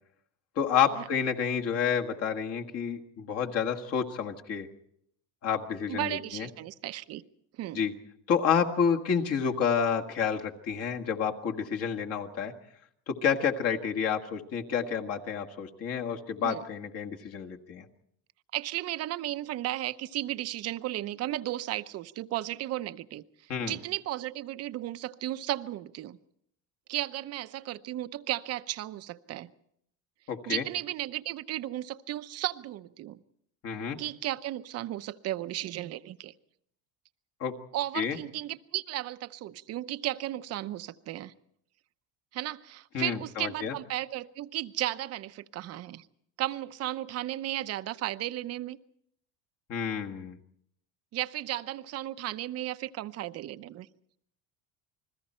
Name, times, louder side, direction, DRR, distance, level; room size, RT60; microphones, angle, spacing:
voice 1, 0.6-4.7 5.4-6.5 7.7-7.9 8.3-12.5 13.1-17.9 23.5-23.7 30.3-30.6 33.6-34.0 37.4-37.5 37.9-38.2 42.9-43.7 49.7-50.4, left 7 dB, 40° left, 1.8 m, -29 dB
voice 2, 5.9-7.2 7.6-7.8 16.4-16.6 18.5-23.2 23.6-26.2 26.9-29.5 30.5-33.2 34.0-36.3 37.7-41.3 42.3-46.1 46.4-48.8 51.1-53.9, right 14 dB, 40° right, 0.8 m, -34 dB
29.0 x 21.5 x 4.4 m
cardioid pair, 155°, 37 cm